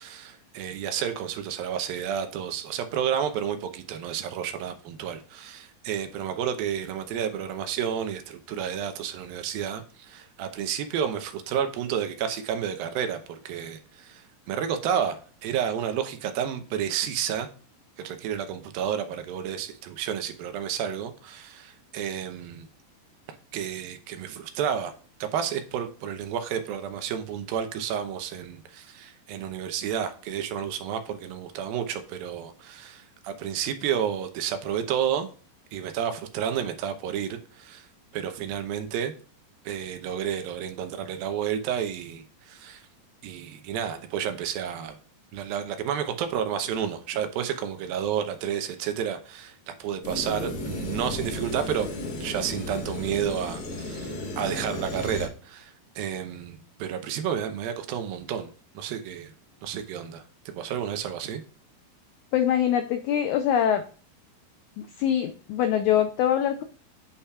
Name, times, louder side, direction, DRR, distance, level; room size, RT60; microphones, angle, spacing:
voice 1, 0.0-14.2 14.5-17.5 18.0-22.7 23.5-24.9 25.2-35.3 35.7-37.9 38.1-39.1 39.7-42.8 43.2-45.0 45.3-51.9 52.2-58.5 58.8-59.3 59.6-60.2 60.6-61.4, right 8 dB, 80° right, 7 dB, 2.7 m, -31 dB
sound 1, 50.0-55.3, left 1 dB, 55° left, 1.7 m, -34 dB
voice 2, 62.3-63.8 64.8-66.6, left 10 dB, 90° left, 8 dB, 1.7 m, -24 dB
8.3 x 5.6 x 2.3 m, 0.39 s
omnidirectional pair, 4.1 m